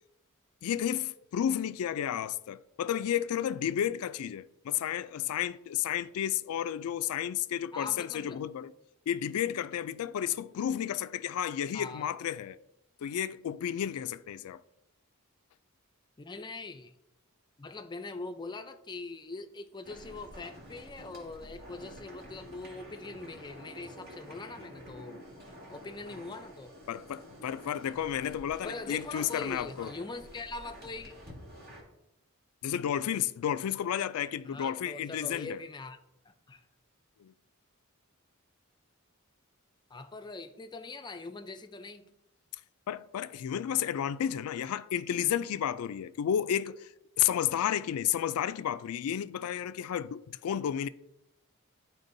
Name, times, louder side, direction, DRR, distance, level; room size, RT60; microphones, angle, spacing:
voice 1, 0.6-8.7 9.1-12.6 13.0-14.6 26.9-29.9 32.6-35.6 37.2-37.3 42.9-46.9 47.2-50.9, left 10 dB, 85° left, 0.3 m, -32 dB
voice 2, 7.7-8.4 11.7-12.1 16.2-16.9 17.6-25.3 25.7-26.7 28.6-31.2 34.4-36.0 36.2-36.6 39.9-42.1, left 3 dB, 20° left, 0.4 m, -42 dB
sound 1, 19.8-31.8, equal, 45° right, 1.8 m, -49 dB
11.0 x 4.4 x 2.6 m
head